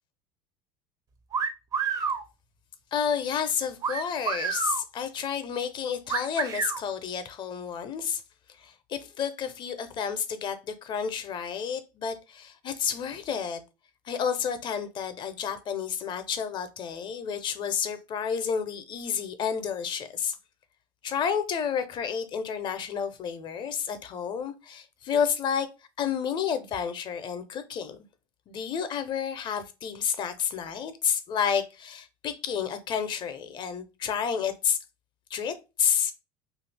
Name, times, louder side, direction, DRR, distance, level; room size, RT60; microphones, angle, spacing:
sound 1, 1.3-2.2 3.8-4.8 6.1-6.8, right 6 dB, 30° right, 0.5 m, -29 dB
voice 1, 2.9-8.2 8.6-13.6 14.0-20.4 21.0-25.7 26.0-28.0 28.5-34.8 35.3-36.1, left 7 dB, 40° left, 0.5 m, -30 dB
2.7 x 2.4 x 3.3 m
supercardioid pair, 105°, 11 cm